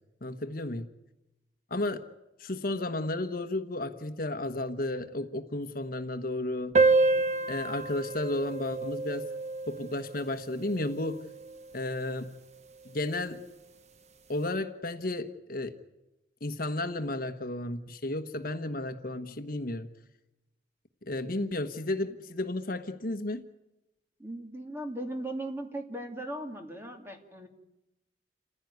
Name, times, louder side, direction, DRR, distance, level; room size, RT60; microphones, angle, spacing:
voice 1, 0.2-0.9 1.7-2.0 2.4-6.7 7.5-9.3 9.7-11.2 11.7-12.3 12.8-13.4 14.3-15.7 16.4-19.9 21.1-23.5, left 2 dB, 50° left, 8 dB, 1.2 m, -33 dB
sound 1, 6.7-11.7, right 3 dB, 40° right, 1.0 m, -28 dB
voice 2, 7.1-7.5 24.2-27.5, right 1 dB, 15° right, 3 dB, 2.8 m, -38 dB
28.5 x 15.5 x 9.3 m, 0.96 s
head